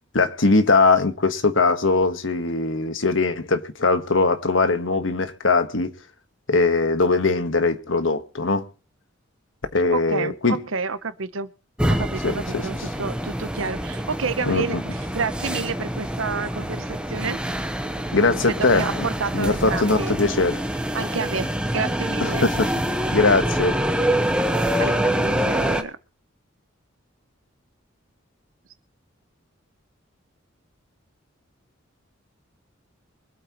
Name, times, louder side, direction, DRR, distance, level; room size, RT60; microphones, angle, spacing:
voice 1, 0.1-5.9 6.5-8.7 9.7-10.6 12.2-12.6 14.5-14.8 18.1-19.1 19.3-20.6 22.2-22.7 23.1-23.8, left 3 dB, 70° left, 1.4 m, -21 dB
voice 2, 9.9-11.5 11.9-17.4 18.5-20.2 20.9-22.5 24.8-26.0, right 4 dB, 85° right, 1.0 m, -29 dB
sound 1, 11.8-25.8, equal, 5° right, 1.0 m, -26 dB
24.0 x 8.5 x 3.1 m
head